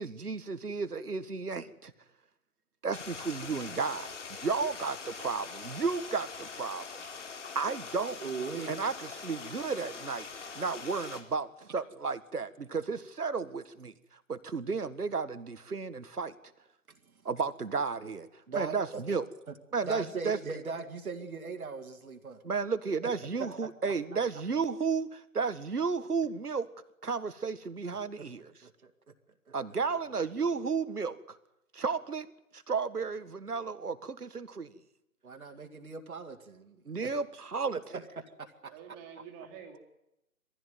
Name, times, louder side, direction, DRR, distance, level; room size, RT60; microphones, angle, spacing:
voice 1, 0.0-1.9 2.8-7.0 7.6-8.2 8.7-10.3 10.5-16.4 17.3-19.2 19.7-20.6 22.4-26.7 27.0-28.5 29.5-31.4 31.7-32.3 32.5-34.7 36.9-37.8, right 5 dB, 85° right, 12 dB, 1.8 m, -33 dB
Stream, 2.9-11.2, left 5 dB, 50° left, 3.8 m, -43 dB
voice 2, 8.2-8.7 11.6-11.8 18.5-19.0 19.5-22.4 22.9-23.1 23.4-23.6 27.9-28.0 28.6-28.9 35.2-37.2 37.9-38.5 38.9-39.0, right 4 dB, 65° right, 5 dB, 2.4 m, -40 dB
voice 3, 29.9-30.7 38.7-39.8, right 7 dB, 15° right, 2 dB, 2.5 m, -49 dB
22.5 x 15.5 x 9.3 m, 0.87 s
figure-of-eight pair, 155°, 45 cm